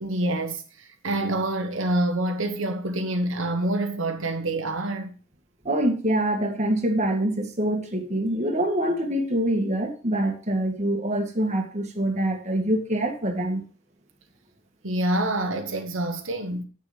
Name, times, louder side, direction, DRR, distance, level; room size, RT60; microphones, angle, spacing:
voice 1, 0.0-5.1 14.8-16.6, right 1 dB, 80° right, 1.3 m, -27 dB
voice 2, 5.6-13.6, right 1 dB, 35° right, 1.7 m, -25 dB
8.2 x 6.6 x 5.0 m
head